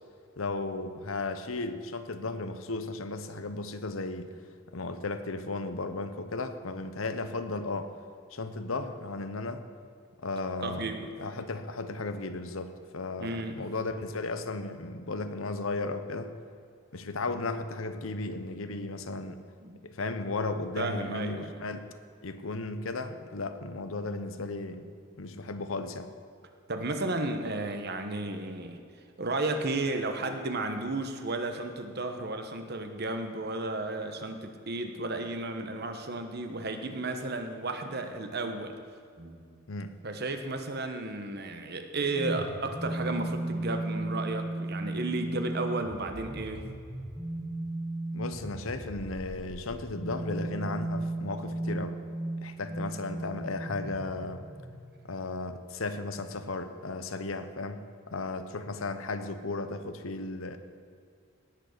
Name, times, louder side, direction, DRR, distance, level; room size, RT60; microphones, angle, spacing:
voice 1, 0.4-4.3 4.7-7.9 8.3-9.7 10.2-16.4 16.9-19.4 19.8-21.9 22.2-24.9 25.2-26.1 39.7-39.9 48.1-52.0 52.4-54.4 55.0-60.6, left 3 dB, 85° left, 9 dB, 0.9 m, -35 dB
voice 2, 10.6-11.1 13.2-13.6 19.6-19.8 20.7-21.6 26.7-28.8 29.2-38.8 39.2-39.4 40.0-46.7, right 2 dB, 50° right, 6 dB, 1.2 m, -33 dB
sound 1, 42.1-55.0, right 2 dB, 5° right, 1.5 m, -36 dB
18.0 x 6.5 x 6.7 m, 2.3 s
head